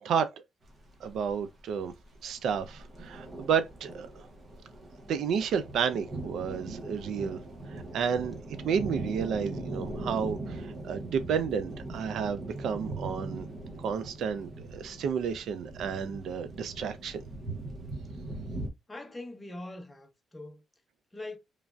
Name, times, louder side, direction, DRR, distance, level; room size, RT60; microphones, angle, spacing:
voice 1, 0.0-0.4 1.0-1.9 2.2-4.3 5.1-7.4 7.7-8.4 8.6-13.5 13.8-17.2, right 7 dB, 65° right, 0.3 m, -31 dB
sound 1, 0.6-18.7, right 2 dB, 30° right, 0.7 m, -40 dB
voice 2, 18.9-20.6 21.1-21.4, left 2 dB, 15° left, 0.7 m, -42 dB
3.1 x 2.5 x 2.2 m
cardioid pair, 125°, 0 cm